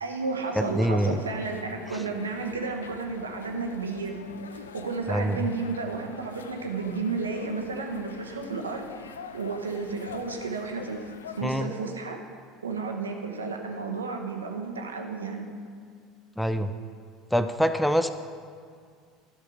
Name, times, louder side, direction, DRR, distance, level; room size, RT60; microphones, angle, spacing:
voice 1, 0.0-4.2 4.5-8.8 9.3-11.1 11.4-12.2 12.6-15.5, right 4 dB, 75° right, 3 dB, 0.8 m, -32 dB
sound 1, 0.5-11.6, left 7 dB, 75° left, 0.3 m, -45 dB
voice 2, 0.6-1.2 5.1-5.4 11.4-11.7 16.4-16.7 17.3-18.1, equal, ahead, 10 dB, 0.4 m, -25 dB
12.0 x 5.8 x 4.8 m, 2.2 s
figure-of-eight pair, 70°, 0 cm